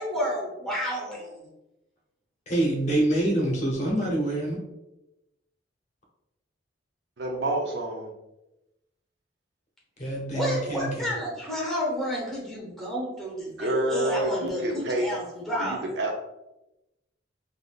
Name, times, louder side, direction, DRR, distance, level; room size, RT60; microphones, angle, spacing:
voice 1, 0.0-1.4 10.3-15.8, equal, ahead, -4 dB, 0.9 m, -31 dB
voice 2, 2.5-4.6 10.0-11.1, right 1 dB, 40° left, -3 dB, 0.8 m, -26 dB
voice 3, 7.2-8.1 13.6-15.1 15.6-16.1, right 1 dB, 60° right, 1 dB, 0.5 m, -28 dB
3.4 x 2.5 x 2.3 m, 0.94 s
head